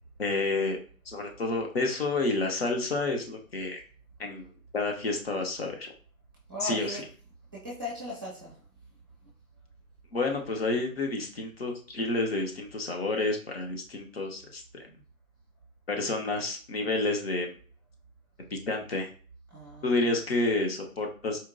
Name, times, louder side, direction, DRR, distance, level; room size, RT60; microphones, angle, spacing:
voice 1, 0.2-0.8 1.1-3.8 4.2-4.5 4.7-5.9 6.6-7.0 10.1-14.8 15.9-17.5 18.5-19.1 19.8-21.4, left 2 dB, 45° left, 2 dB, 0.8 m, -29 dB
voice 2, 6.5-7.0 7.5-8.6 19.5-19.9, left 2 dB, 15° right, -7 dB, 0.5 m, -37 dB
4.4 x 2.7 x 2.5 m, 0.41 s
hypercardioid pair, 155°, 43 cm